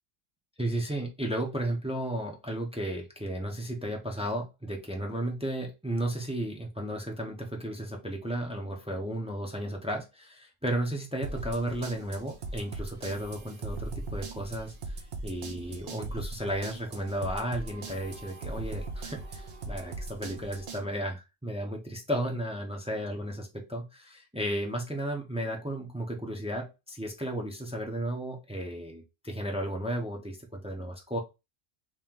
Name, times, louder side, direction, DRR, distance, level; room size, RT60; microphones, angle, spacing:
voice 1, 0.6-31.2, right 1 dB, 5° right, 1 dB, 0.6 m, -34 dB
sound 1, 11.2-20.8, right 2 dB, 55° right, 0.9 m, -39 dB
3.0 x 2.9 x 3.6 m, 0.25 s
omnidirectional pair, 1.0 m